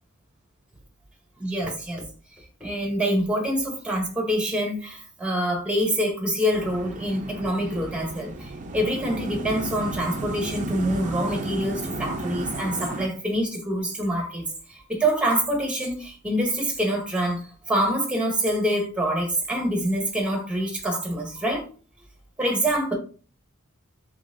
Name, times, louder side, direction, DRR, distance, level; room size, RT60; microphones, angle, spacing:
voice 1, 1.4-2.0 2.6-14.5 14.9-17.4 17.7-21.6 22.4-22.9, right 1 dB, 5° right, 0.9 m, -26 dB
sound 1, 6.5-13.1, right 2 dB, 35° right, 0.5 m, -33 dB
3.7 x 3.2 x 2.6 m
head